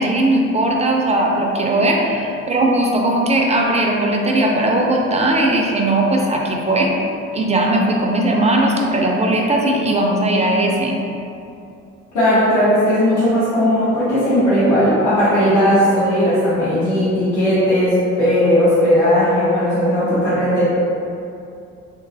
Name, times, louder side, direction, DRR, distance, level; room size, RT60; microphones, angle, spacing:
voice 1, 0.0-6.9 7.3-11.0, right 1 dB, 20° right, -1 dB, 0.4 m, -18 dB
voice 2, 12.1-20.6, equal, 80° left, -15 dB, 1.3 m, -16 dB
3.4 x 3.0 x 2.6 m, 2.6 s
cardioid pair, 100°, 31 cm